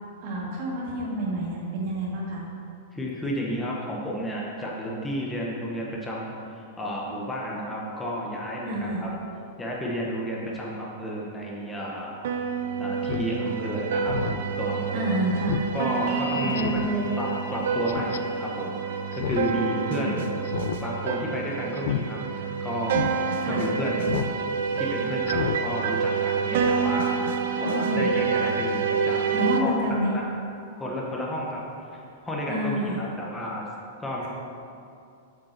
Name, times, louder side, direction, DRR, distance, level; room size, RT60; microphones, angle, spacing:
voice 1, 0.2-2.4 8.7-9.1 14.9-15.6 16.4-17.1 19.9-20.2 23.4-23.6 27.6-28.1 29.3-30.1 32.5-33.1, right 1 dB, 35° right, -4 dB, 1.9 m, -28 dB
voice 2, 2.9-9.1 9.6-12.2 12.8-14.2 14.6-15.2 15.7-16.8 17.2-20.1 20.8-23.2 23.4-24.2 24.8-29.7 30.1-30.3 30.7-31.6 31.9-33.7 34.0-34.3, equal, 5° left, -3 dB, 0.9 m, -32 dB
sound 1, 12.2-29.6, right 6 dB, 55° right, 0.6 m, -28 dB
Speech synthesizer, 13.0-13.3 13.6-13.7 14.1-14.4 14.8-14.9 15.5-15.7 16.0-16.1 16.5-16.9 17.9-18.2 19.1-19.5 19.8-19.9 20.4-20.8 21.1-21.3 21.8-22.0 22.4-22.5 22.9-23.1 24.1-24.3 24.7-24.8 25.2-25.6 25.9-26.0, left 8 dB, 70° left, 0.4 m, -30 dB
sound 2, 16.1-28.2 29.2-29.3, left 3 dB, 20° right, 1.9 m, -45 dB
7.4 x 5.2 x 6.4 m, 2.5 s
supercardioid pair, 175°, 0 cm